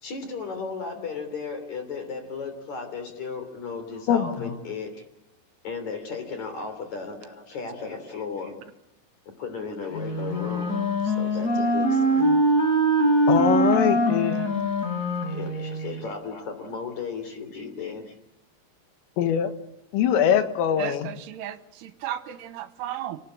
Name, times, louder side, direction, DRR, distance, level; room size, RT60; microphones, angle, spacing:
voice 1, 0.0-5.0 5.6-8.6 9.3-12.5 15.3-18.1, left 5 dB, 40° left, 8 dB, 4.1 m, -35 dB
Wind instrument woodwind instrument, 9.9-16.0, right 1 dB, 20° left, 5.0 m, -23 dB
voice 2, 13.3-14.5 19.2-19.5 19.9-21.1, left 9 dB, 85° left, 9 dB, 4.2 m, -22 dB
voice 3, 20.8-23.2, right 11 dB, 75° right, 11 dB, 3.4 m, -35 dB
27.0 x 18.5 x 8.7 m, 0.84 s
omnidirectional pair, 5.8 m